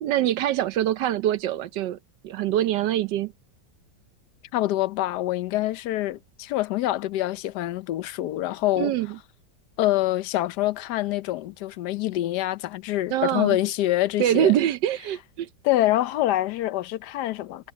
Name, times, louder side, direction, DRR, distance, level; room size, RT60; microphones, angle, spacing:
voice 1, 0.0-3.3 8.8-9.1 13.1-13.6 14.2-15.5, right 12 dB, 85° right, 1.4 m, -24 dB
voice 2, 4.5-8.9 9.8-14.6 15.6-17.7, left 15 dB, 75° left, 1.2 m, -25 dB
omnidirectional pair, 1.8 m